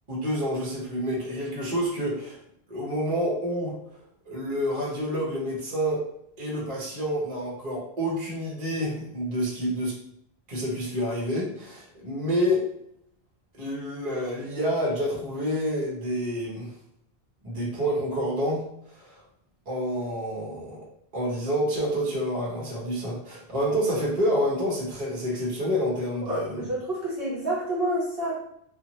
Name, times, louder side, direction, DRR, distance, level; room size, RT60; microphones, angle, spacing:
voice 1, 0.1-2.4 2.7-3.7 4.3-6.0 6.4-9.9 10.5-12.7 13.5-16.7 17.4-19.2 19.7-20.8 21.1-26.7, equal, 40° right, -5 dB, 1.0 m, -28 dB
voice 2, 26.2-28.4, right 1 dB, 65° right, -6 dB, 1.0 m, -28 dB
2.6 x 2.4 x 3.0 m, 0.74 s
omnidirectional pair, 1.1 m